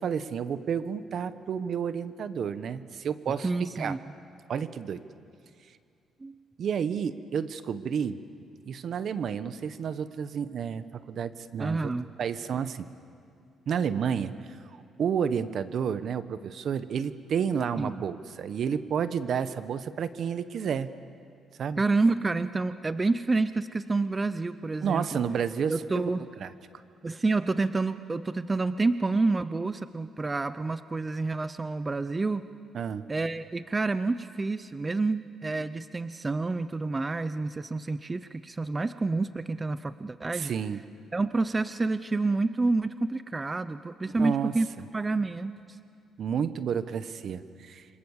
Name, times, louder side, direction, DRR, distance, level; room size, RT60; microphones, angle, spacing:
voice 1, 0.0-3.5 3.8-3.9 4.5-5.0 6.6-8.2 8.7-11.9 12.2-12.9 13.7-14.6 15.0-21.0 21.6-21.8 24.8-26.1 26.4-26.5 32.7-33.1 40.3-40.8 44.2-44.5 46.2-47.9, right 7 dB, 60° right, 13 dB, 1.1 m, -30 dB
voice 2, 3.4-4.0 6.2-6.3 11.6-12.1 17.8-17.9 21.8-25.2 25.7-26.2 27.0-32.5 33.1-40.5 41.1-44.7 44.9-45.8, right 3 dB, 25° right, 13 dB, 0.7 m, -28 dB
27.5 x 25.0 x 7.3 m, 2.3 s
cardioid pair, 90°, 0 cm